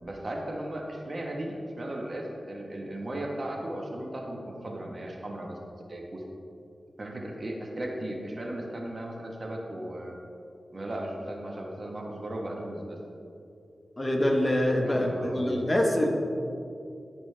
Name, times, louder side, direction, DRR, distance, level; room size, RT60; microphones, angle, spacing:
voice 1, 0.0-5.5 5.9-6.2 7.0-10.2 10.7-13.0 14.9-15.7, right 1 dB, 50° right, 0 dB, 1.2 m, -36 dB
voice 2, 14.0-16.1, left 1 dB, 30° left, 1 dB, 1.3 m, -25 dB
13.0 x 5.1 x 3.3 m, 2.6 s
cardioid pair, 45°, 0 cm